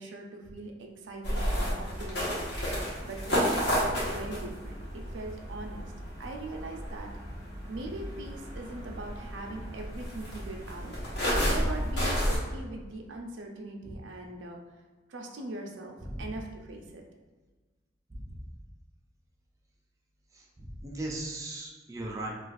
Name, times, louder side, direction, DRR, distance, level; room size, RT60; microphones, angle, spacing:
voice 1, 0.0-2.4 2.7-5.9 6.2-7.1 7.7-11.0 11.5-14.6 15.1-17.0, right 2 dB, 90° right, 3 dB, 0.5 m, -41 dB
sound 1, 1.2-12.4, equal, 65° left, 1.0 m, -32 dB
voice 2, 20.6-22.3, right 1 dB, 15° right, -2 dB, 0.4 m, -37 dB
2.4 x 2.4 x 3.9 m, 1.3 s
head